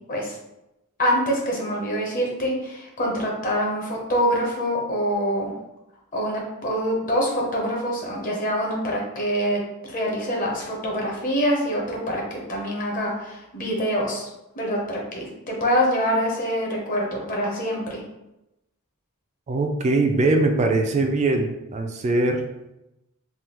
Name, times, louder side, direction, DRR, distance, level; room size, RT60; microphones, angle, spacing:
voice 1, 1.0-5.5 6.1-14.3 14.6-18.0, equal, 40° left, -2 dB, 0.8 m, -25 dB
voice 2, 19.5-22.4, right 2 dB, 30° right, 4 dB, 0.3 m, -21 dB
3.4 x 2.2 x 2.9 m, 0.92 s
head